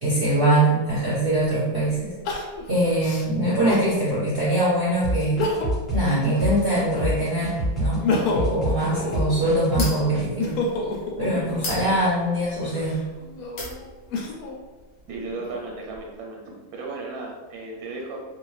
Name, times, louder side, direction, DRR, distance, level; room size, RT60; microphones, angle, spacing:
voice 1, 0.0-2.1 2.7-5.4 5.9-8.0 8.3-10.6 11.2-13.0, right 1 dB, 50° right, -10 dB, 0.8 m, -23 dB
Crying sobbing, 2.2-3.9 4.5-4.6 5.2-5.9 6.3-7.3 7.8-11.8 12.5-14.6 15.1-16.0, left 3 dB, 80° left, 1.0 m, -29 dB
sound 1, 5.0-10.3, equal, ahead, 0.8 m, -27 dB
sound 2, 7.6-13.2 13.5-14.1, left 3 dB, 55° left, 0.8 m, -37 dB
voice 2, 15.1-16.4 16.7-18.2, right 3 dB, 90° right, -1 dB, 1.1 m, -34 dB
2.6 x 2.1 x 3.1 m, 1.3 s
omnidirectional pair, 1.5 m